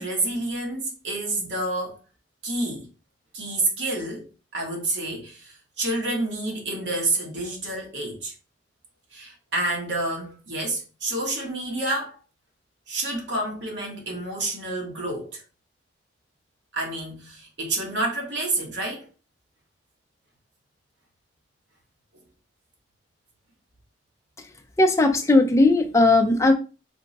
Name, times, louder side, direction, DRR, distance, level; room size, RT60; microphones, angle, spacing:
voice 1, 0.0-2.0 2.4-2.9 3.3-4.3 4.5-8.3 9.1-12.2 12.9-15.4 16.7-19.1, right 2 dB, 75° right, 1.3 m, -29 dB
voice 2, 24.8-26.5, left 2 dB, 15° left, 0.4 m, -17 dB
3.3 x 2.1 x 4.0 m
head